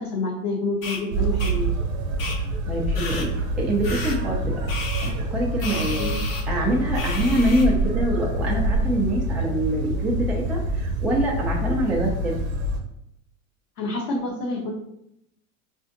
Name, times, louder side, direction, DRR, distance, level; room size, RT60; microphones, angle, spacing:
voice 1, 0.0-1.7 6.0-6.2 13.8-14.7, left 2 dB, 45° left, -4 dB, 0.9 m, -28 dB
sound 1, 0.8-1.0 1.4-1.5 2.2-2.4 2.9-3.3 3.8-4.2 4.7-5.1 5.6-6.4 6.9-7.6, left 3 dB, 85° left, 1.1 m, -32 dB
sound 2, 1.1-12.8, right 1 dB, 45° right, 0.8 m, -26 dB
voice 2, 2.7-4.7 5.0-6.0 6.5-12.4, right 1 dB, 5° right, -3 dB, 0.3 m, -25 dB
4.7 x 2.6 x 2.6 m, 0.79 s
hypercardioid pair, 110°, 41 cm